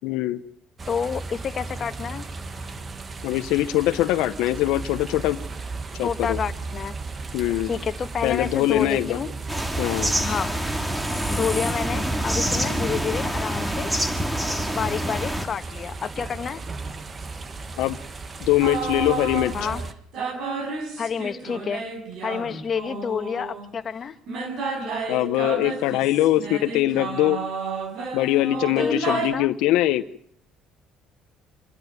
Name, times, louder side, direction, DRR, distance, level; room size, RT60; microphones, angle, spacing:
voice 1, 0.0-0.4 3.2-5.4 6.0-6.4 7.3-7.7 8.2-9.2 9.8-10.1 17.8-18.0 18.4-19.5 25.1-27.4 28.1-30.0, left 15 dB, 85° left, 9 dB, 0.9 m, -22 dB
sound 1, 0.8-19.9, right 3 dB, 30° right, 1.6 m, -36 dB
voice 2, 0.9-2.3 6.0-6.9 7.6-9.3 10.2-10.6 11.3-13.9 14.7-16.6 19.5-19.8 21.0-21.8 22.2-24.1 28.8-29.5, left 6 dB, 40° left, 8 dB, 1.6 m, -29 dB
sound 2, 9.5-15.5, right 1 dB, 10° right, 2.2 m, -26 dB
sound 3, 18.6-19.8 20.1-23.7 24.3-29.3, right 4 dB, 60° right, 5.8 m, -31 dB
26.5 x 12.0 x 9.3 m, 0.65 s
cardioid pair, 110°, 0 cm